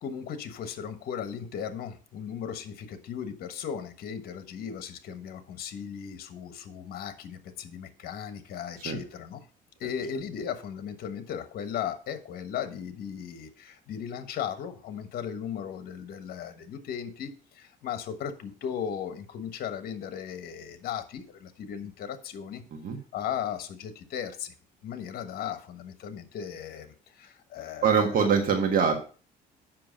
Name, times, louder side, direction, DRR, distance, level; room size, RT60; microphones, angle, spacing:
voice 1, 0.0-9.4 9.8-22.6 23.1-24.5 24.8-27.9, left 8 dB, 65° left, 10 dB, 1.3 m, -36 dB
voice 2, 27.8-28.9, right 6 dB, 55° right, 3 dB, 1.6 m, -23 dB
7.6 x 6.0 x 5.2 m, 0.38 s
cardioid pair, 110°, 17 cm